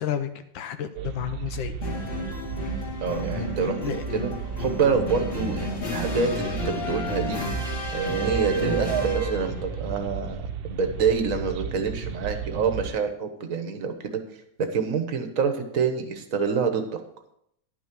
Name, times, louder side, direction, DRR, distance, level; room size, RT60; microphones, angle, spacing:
voice 1, 0.0-1.9 3.6-4.1, left 10 dB, 75° left, 9 dB, 1.5 m, -32 dB
sound 1, 0.9-12.9, right 7 dB, 70° right, 1.4 m, -33 dB
sound 2, 1.8-9.7, left 2 dB, 25° left, 2.1 m, -32 dB
voice 2, 3.0-4.3 4.6-7.4 7.9-10.4 10.7-14.2 14.6-17.0, right 5 dB, 50° right, 6 dB, 1.3 m, -27 dB
11.0 x 6.2 x 6.1 m, 0.73 s
omnidirectional pair, 2.2 m